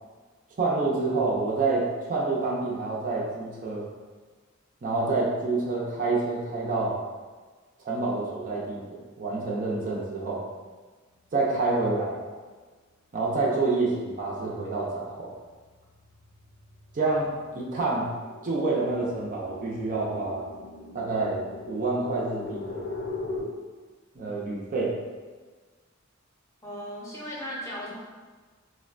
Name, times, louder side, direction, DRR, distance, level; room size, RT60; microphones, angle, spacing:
voice 1, 0.6-3.9 4.8-7.0 7.8-8.8 9.2-10.4 11.3-12.2 13.1-15.3 16.9-18.1 18.4-20.5 20.9-22.9 24.1-25.0, right 3 dB, 40° right, -4 dB, 0.5 m, -27 dB
sound 1, 15.1-23.4, left 3 dB, 60° left, 0.5 m, -40 dB
voice 2, 26.6-27.9, equal, 15° left, -7 dB, 0.7 m, -36 dB
3.6 x 2.1 x 2.4 m, 1.4 s
head